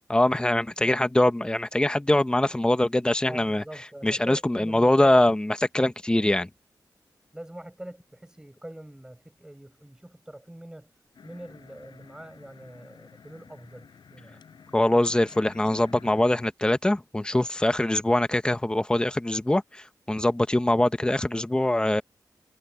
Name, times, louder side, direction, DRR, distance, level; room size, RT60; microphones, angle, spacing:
voice 1, 0.1-3.6 4.0-6.5 14.7-22.0, left 1 dB, 10° left, 1.1 m, -23 dB
voice 2, 3.3-5.2 7.3-10.9 11.2-14.4, right 1 dB, 10° right, 6.6 m, -43 dB
sound 1, 11.1-16.5, left 6 dB, 85° left, 7.0 m, -51 dB
wide cardioid pair, 140°, 8 cm